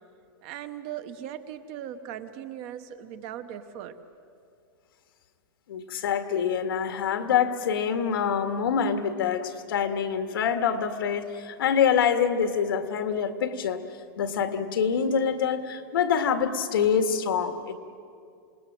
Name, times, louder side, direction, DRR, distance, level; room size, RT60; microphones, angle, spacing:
voice 1, 0.4-4.0, right 10 dB, 35° right, 10 dB, 1.0 m, -38 dB
voice 2, 5.7-13.8 14.2-17.7, left 7 dB, 85° left, 7 dB, 2.0 m, -25 dB
27.5 x 20.0 x 7.7 m, 2.4 s
supercardioid pair, 180°, 12 cm